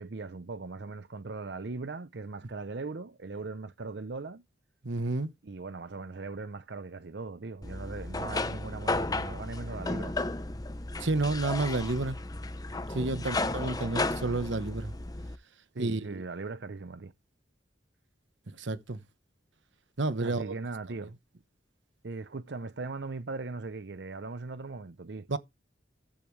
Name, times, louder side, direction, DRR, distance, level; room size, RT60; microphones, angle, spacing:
voice 1, 0.0-4.4 5.4-10.2 13.0-13.2 15.7-17.1 20.2-21.2 22.0-25.3, right 3 dB, 60° right, 0.7 m, -39 dB
voice 2, 4.8-5.3 11.0-12.2 12.9-14.9 15.8-16.2 18.6-19.0 20.0-20.6 25.3-25.4, right 2 dB, 75° right, 1.1 m, -30 dB
sound 1, 7.6-15.4, left 2 dB, 20° left, 0.7 m, -34 dB
14.5 x 8.7 x 3.2 m
head